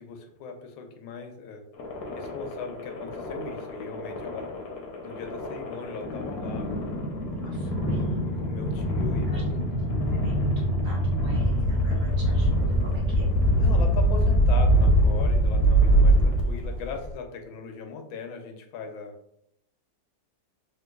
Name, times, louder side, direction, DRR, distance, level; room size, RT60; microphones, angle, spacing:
voice 1, 0.0-1.6 2.1-4.5 5.0-7.0 8.4-9.5 13.6-19.1, left 5 dB, 85° left, 4 dB, 1.4 m, -39 dB
sound 1, 1.8-16.9, right 1 dB, 65° left, 1.0 m, -24 dB
voice 2, 7.4-8.1 9.3-9.6 10.2-13.3, right 2 dB, 55° right, -5 dB, 1.4 m, -46 dB
Bass guitar, 7.8-11.9, left 2 dB, 80° right, 1.5 m, -41 dB
sound 2, 11.6-17.1, left 1 dB, 45° left, 0.6 m, -37 dB
3.8 x 2.5 x 2.2 m, 0.74 s
omnidirectional pair, 2.1 m